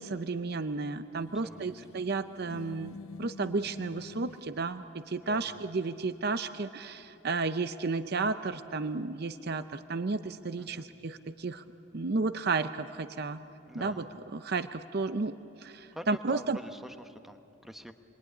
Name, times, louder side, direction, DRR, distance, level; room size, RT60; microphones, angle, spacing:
voice 1, 0.0-11.6 11.9-13.4 13.7-16.6, right 3 dB, 45° right, 11 dB, 0.6 m, -33 dB
sound 1, 1.2-4.5, left 2 dB, 70° left, 0.8 m, -47 dB
voice 2, 1.4-1.8 5.2-5.6 10.6-10.9 13.7-14.1 15.9-17.9, equal, ahead, 7 dB, 0.9 m, -47 dB
27.0 x 22.0 x 9.9 m, 2.8 s
head